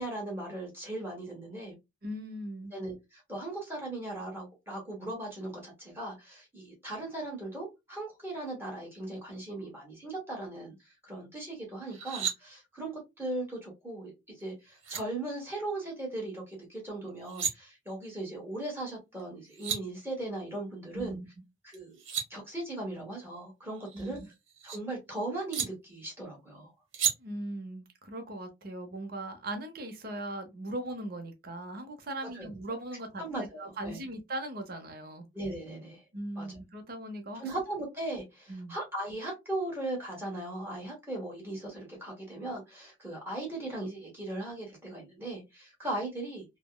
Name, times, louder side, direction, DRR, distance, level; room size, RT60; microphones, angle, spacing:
voice 1, 0.0-1.7 2.7-21.2 21.6-22.0 22.3-24.2 24.6-26.7 32.3-32.5 33.2-34.1 35.3-36.0 36.4-36.5 37.3-46.4, right 2 dB, 10° right, 1.1 m, -38 dB
voice 2, 2.0-2.7 20.9-21.2 23.9-24.3 27.2-33.2 33.6-35.3 36.1-37.4 38.5-38.8, right 1 dB, 50° right, 0.7 m, -39 dB
sound 1, 11.9-12.4 14.4-14.5 14.8-15.0 17.1-17.5 19.2-19.3 19.5-19.8 21.7-22.3 23.8-24.8 25.5-25.7 26.9-27.1, right 7 dB, 80° right, 1.0 m, -33 dB
3.4 x 2.1 x 2.2 m
head